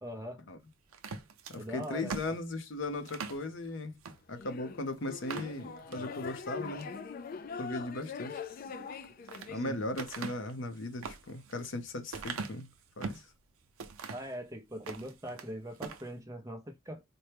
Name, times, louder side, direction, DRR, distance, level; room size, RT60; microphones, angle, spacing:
voice 1, 0.0-0.4 1.5-2.4 8.6-8.9 9.4-9.8 14.1-17.0, equal, 15° right, 0.6 m, -42 dB
sound 1, 0.9-3.4 4.0-4.2 4.6-4.7 5.1-6.0 6.5-7.0 8.8-9.5 10.0-13.3 13.8-14.3 14.7-15.5 15.8-16.1, right 4 dB, 85° right, 0.6 m, -42 dB
voice 2, 1.5-4.0 4.3-6.9 7.6-8.4 9.5-12.7 13.0-13.3, left 2 dB, 60° left, 0.7 m, -37 dB
sound 2, 4.3-9.7, left 5 dB, 40° left, 0.3 m, -42 dB
4.3 x 2.2 x 3.3 m
head